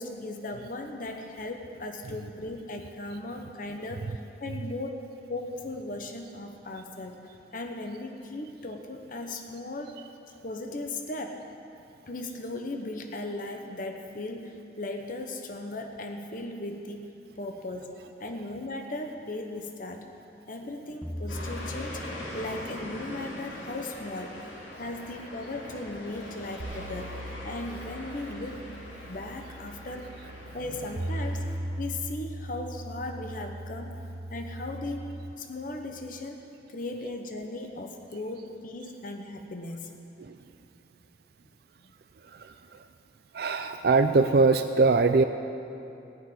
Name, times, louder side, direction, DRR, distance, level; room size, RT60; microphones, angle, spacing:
voice 1, 0.0-5.0 5.3-7.2 7.5-10.0 10.4-11.4 12.1-20.1 20.5-22.0 22.3-24.4 24.8-28.8 29.1-30.1 30.5-31.5 31.8-34.0 34.3-35.1 35.4-39.9, left 2 dB, 50° left, 4 dB, 0.9 m, -37 dB
sound 1, 21.0-23.4, equal, 10° left, 0.8 m, -39 dB
sound 2, 21.3-31.6, left 1 dB, 90° left, 2.8 m, -42 dB
sound 3, 26.6-35.3, right 1 dB, 75° right, 1.0 m, -39 dB
voice 2, 42.2-42.8 43.3-45.2, right 3 dB, 60° right, 8 dB, 0.4 m, -22 dB
16.5 x 6.2 x 9.6 m, 2.8 s
head